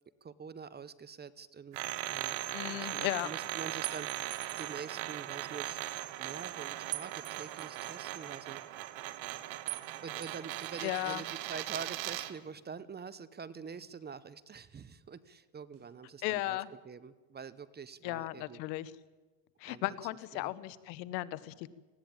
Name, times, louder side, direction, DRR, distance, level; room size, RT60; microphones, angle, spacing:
voice 1, 0.2-1.8 2.1-2.4 2.7-5.8 6.2-8.6 10.0-16.6 16.8-18.6 19.7-19.9 20.3-20.5, right 6 dB, 20° right, 17 dB, 0.7 m, -46 dB
sound 1, 1.7-12.4, right 15 dB, 65° right, 1.5 m, -39 dB
voice 2, 2.5-3.3 10.8-11.2 16.2-16.7 18.0-18.9 19.6-21.7, left 17 dB, 85° left, 17 dB, 1.1 m, -36 dB
sound 2, 3.8-4.8 6.9-7.9 9.7-9.9 10.2-11.2, right 20 dB, 85° right, 1.5 m, -43 dB
sound 3, 9.7-10.0 11.7-12.0 13.7-14.0 15.7-16.0, right 3 dB, 40° right, 5.3 m, -67 dB
19.0 x 16.0 x 8.9 m, 1.3 s
supercardioid pair, 120°, 49 cm